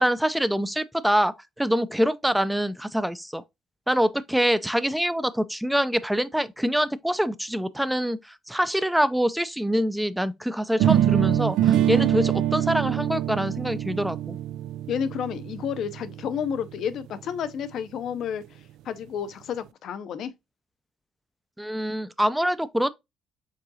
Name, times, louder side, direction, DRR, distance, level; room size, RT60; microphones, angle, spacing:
voice 1, 0.0-3.4 3.9-14.4 21.6-22.9, equal, 5° right, 0.4 m, -25 dB
sound 1, 10.8-16.7, right 11 dB, 90° right, 0.3 m, -24 dB
voice 2, 14.9-18.6 18.8-20.3, left 8 dB, 70° left, 0.6 m, -31 dB
4.8 x 3.6 x 2.7 m
cardioid pair, 110°, 0 cm